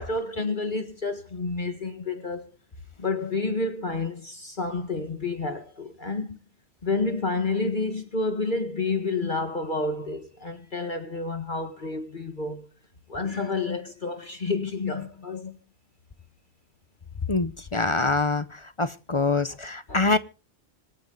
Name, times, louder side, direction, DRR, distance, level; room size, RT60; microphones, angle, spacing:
voice 1, 0.0-2.4 3.0-6.4 6.8-12.7 13.1-15.6 19.9-20.1, left 3 dB, 50° left, 1.7 m, -29 dB
voice 2, 17.3-18.4 18.8-20.2, left 3 dB, 35° left, 0.7 m, -24 dB
26.0 x 9.1 x 4.0 m
omnidirectional pair, 1.1 m